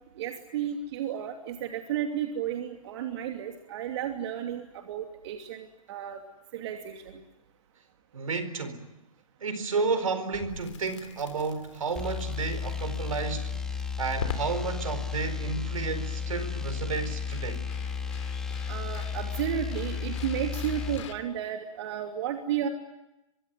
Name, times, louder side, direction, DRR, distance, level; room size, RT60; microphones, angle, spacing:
voice 1, 0.2-6.2 6.5-7.2 18.7-22.7, right 9 dB, 50° right, 4 dB, 2.9 m, -33 dB
voice 2, 8.1-8.9 9.4-17.6, right 4 dB, 70° right, 11 dB, 4.4 m, -32 dB
Crackle, 10.3-21.1, left 8 dB, 60° left, 3.2 m, -45 dB
sound 1, 12.0-21.0, left 6 dB, 5° left, 2.3 m, -33 dB
24.5 x 24.0 x 9.6 m, 0.94 s
figure-of-eight pair, 115°, 18 cm